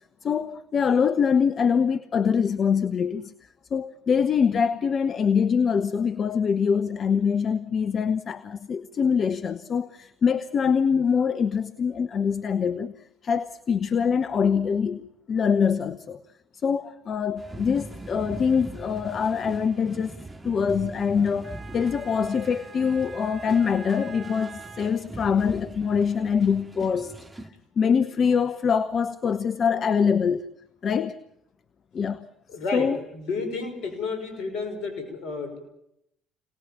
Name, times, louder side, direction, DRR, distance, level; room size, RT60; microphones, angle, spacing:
voice 1, 0.2-3.3 3.7-12.9 13.2-16.2 16.6-20.2 20.4-27.2 27.8-30.5 30.8-31.2 31.9-32.3 32.7-33.0, left 6 dB, 45° left, 1.0 m, -24 dB
sound 1, 17.4-27.5, right 2 dB, 20° right, 2.5 m, -41 dB
voice 2, 32.5-35.6, left 4 dB, 65° left, 5.8 m, -31 dB
26.5 x 19.0 x 7.3 m
hypercardioid pair, 55°, 0 cm